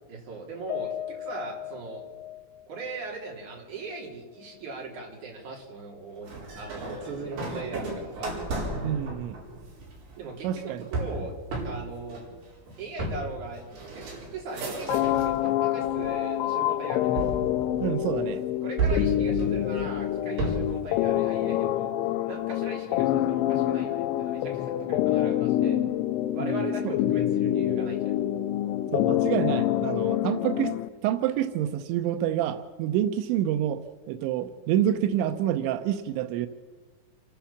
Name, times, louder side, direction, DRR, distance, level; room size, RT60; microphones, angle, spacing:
voice 1, 0.1-2.0 2.7-8.3 10.2-11.3 11.6-12.2 12.8-14.0 14.3-17.2 18.6-21.9 22.2-25.8 26.3-28.2, right 3 dB, 45° right, -1 dB, 4.9 m, -39 dB
Piano, 0.7-5.2 5.5-5.7 6.1-6.2, left 13 dB, 55° left, 2.0 m, -40 dB
sound 1, 6.3-15.4 15.8-16.4 17.2-18.2 18.8-20.8, right 3 dB, 60° right, 6.4 m, -33 dB
voice 2, 8.8-9.4 10.4-10.9 17.8-18.4 26.4-26.9 28.9-30.8 31.0-33.8 34.1-36.5, right 11 dB, 90° right, 8 dB, 3.2 m, -27 dB
sound 2, 14.9-30.9, left 13 dB, 85° left, 3.1 m, -26 dB
28.0 x 13.0 x 7.3 m, 1.4 s
omnidirectional pair, 5.1 m